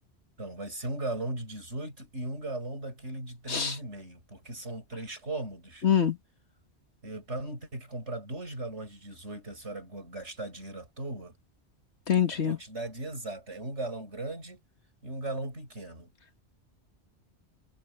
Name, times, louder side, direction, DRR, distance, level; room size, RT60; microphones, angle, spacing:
voice 1, 0.4-5.9 7.0-11.3 12.3-14.6 15.0-16.1, right 2 dB, 80° right, 7.5 m, -38 dB
voice 2, 5.8-6.2 12.1-12.6, left 8 dB, 75° left, 1.9 m, -24 dB
omnidirectional pair, 1.2 m